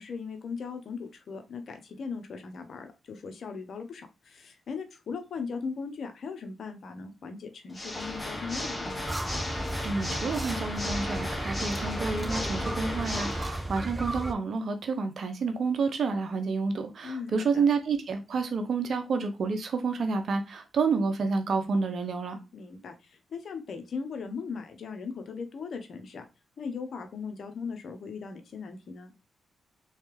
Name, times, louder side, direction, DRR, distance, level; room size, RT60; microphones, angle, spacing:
voice 1, 0.0-9.0 17.0-17.6 22.5-26.2 26.6-29.1, left 5 dB, 65° left, 0.7 m, -38 dB
Water / Mechanisms, 7.7-13.7, left 1 dB, 20° left, 1.0 m, -35 dB
sound 1, 9.1-14.3, right 1 dB, 20° right, 0.4 m, -35 dB
voice 2, 9.8-22.4, right 4 dB, 65° right, 0.8 m, -29 dB
3.3 x 3.2 x 3.1 m
supercardioid pair, 55°, 0 cm